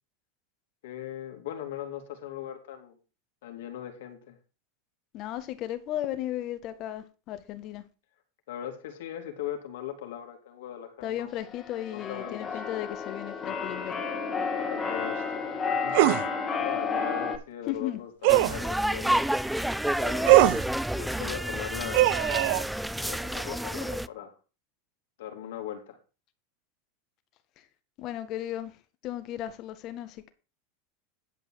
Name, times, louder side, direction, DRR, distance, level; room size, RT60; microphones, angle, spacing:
voice 1, 0.8-3.0 3.4-4.4 8.5-11.4 11.9-12.5 14.5-16.1 16.6-19.2 20.0-20.4 21.0-22.2 23.0-24.4 25.2-26.0, left 10 dB, 80° left, 2.9 m, -39 dB
voice 2, 5.1-7.8 11.0-14.0 17.7-18.0 28.0-28.7 29.0-30.3, left 12 dB, 45° left, 1.8 m, -35 dB
Keyboard (musical), 11.5-17.4, left 5 dB, 25° left, 2.2 m, -31 dB
sound 1, 15.9-16.2 18.2-18.6 20.2-20.6 21.9-22.6, right 18 dB, 65° right, 0.6 m, -20 dB
sound 2, 18.3-24.1, right 1 dB, ahead, 0.4 m, -29 dB
11.0 x 5.5 x 6.5 m
supercardioid pair, 120°, 0 cm